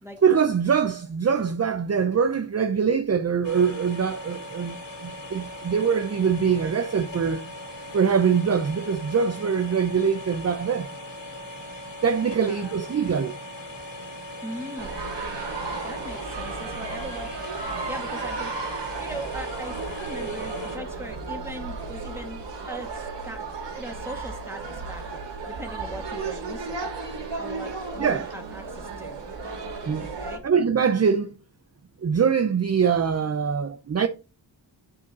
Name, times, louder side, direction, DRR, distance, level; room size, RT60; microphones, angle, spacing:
voice 1, 0.2-4.8 5.0-7.4 7.9-10.9 12.0-13.4 28.0-28.3 29.9-30.1 30.4-31.3 32.0-34.1, right 6 dB, 35° right, 0.7 m, -23 dB
sound 1, 3.4-20.8, left 1 dB, 75° left, 2.8 m, -39 dB
voice 2, 12.4-12.8 14.4-15.1 15.8-18.5 19.0-23.5 23.8-26.9 27.4-29.2 30.1-30.4, equal, 5° right, 2.4 m, -40 dB
sound 2, 14.8-30.4, right 4 dB, 75° right, 2.7 m, -34 dB
8.6 x 5.2 x 3.9 m
cardioid pair, 85°, 43 cm